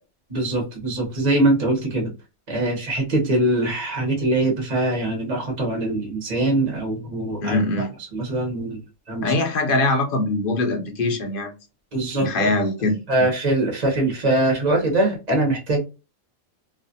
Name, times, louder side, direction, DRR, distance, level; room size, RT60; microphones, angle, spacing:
voice 1, 0.3-2.1 2.5-7.6 8.1-8.8 9.1-9.3 11.9-12.5 13.1-15.8, right 2 dB, 35° right, 0.8 m, -22 dB
voice 2, 7.4-7.9 9.2-11.5 12.2-13.0, left 2 dB, 50° left, 0.7 m, -22 dB
2.5 x 2.4 x 2.6 m
omnidirectional pair, 1.5 m